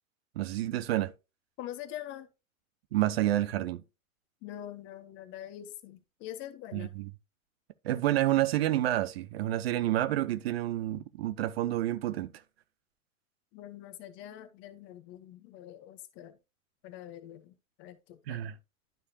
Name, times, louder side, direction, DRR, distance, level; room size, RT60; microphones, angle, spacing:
voice 1, 0.4-1.1 2.9-3.8 6.7-7.1 7.8-12.3 18.3-18.5, right 14 dB, 45° right, 0.7 m, -29 dB
voice 2, 1.6-2.3 4.4-6.9 13.5-16.3 16.8-17.5 17.8-18.4, left 12 dB, 30° left, 0.9 m, -44 dB
11.5 x 4.9 x 2.8 m
figure-of-eight pair, 100°, 41 cm